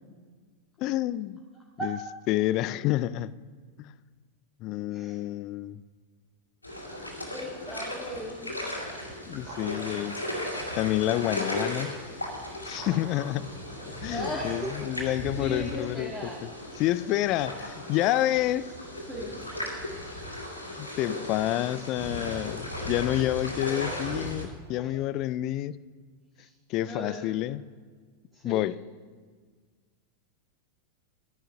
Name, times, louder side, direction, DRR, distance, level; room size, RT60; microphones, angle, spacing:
voice 1, 0.8-1.4 1.8-2.0 2.3-3.3 3.8-3.9 4.6-5.8 9.3-10.2 10.7-11.9 12.6-13.5 14.0-16.1 16.8-18.7 20.8-25.8 26.7-27.6 28.4-28.8, left 15 dB, 40° left, 0.4 m, -28 dB
sound 1, 6.6-24.5, left 1 dB, 85° left, 2.1 m, -36 dB
voice 2, 7.3-8.6 14.1-15.1 15.4-16.4 19.1-19.3 20.1-20.2 24.6-25.0 26.4-26.5 26.8-27.3 28.3-28.7, equal, 10° right, 1.9 m, -37 dB
sound 2, 9.3-11.6 12.6-15.1, right 3 dB, 50° right, 2.7 m, -48 dB
12.0 x 10.0 x 5.4 m
figure-of-eight pair, 90°, 0 cm